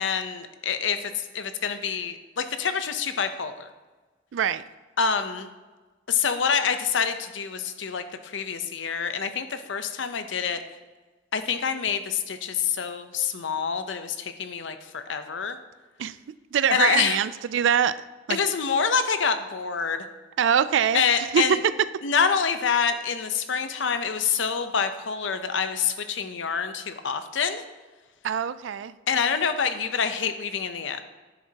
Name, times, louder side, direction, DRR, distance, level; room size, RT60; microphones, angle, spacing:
voice 1, 0.0-3.7 5.0-5.5 6.1-10.6 11.3-15.6 16.7-17.2 18.3-20.0 20.9-21.6 22.0-27.6 29.1-31.0, left 6 dB, 70° left, 9 dB, 0.7 m, -26 dB
voice 2, 4.3-4.6 16.0-16.1 16.5-18.0 18.3-18.4 20.4-21.0 21.3-21.4 28.2-28.9, right 8 dB, 70° right, 15 dB, 0.3 m, -23 dB
10.0 x 7.5 x 2.8 m, 1.3 s
head